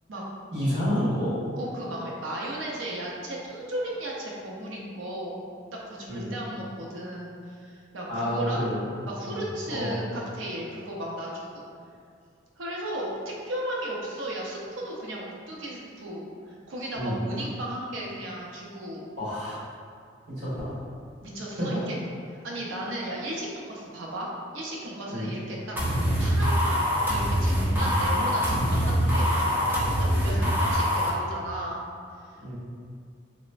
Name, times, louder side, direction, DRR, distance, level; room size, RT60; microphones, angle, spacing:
voice 1, 0.5-1.3 6.1-6.3 8.1-8.8 9.2-9.4 9.7-10.0 16.9-17.2 19.2-19.6 20.4-20.7 21.6-21.8 25.1-25.3 32.4-32.5, equal, 60° right, -10 dB, 1.3 m, -29 dB
voice 2, 1.5-5.4 5.9-8.7 9.1-11.6 12.6-19.1 21.2-22.0 22.3-25.8 26.2-26.7 27.1-31.9 32.2-32.5, right 1 dB, 85° right, -3 dB, 0.5 m, -35 dB
sound 1, 25.8-31.1, equal, 10° right, 0.4 m, -24 dB
3.0 x 2.0 x 2.4 m, 2.2 s
head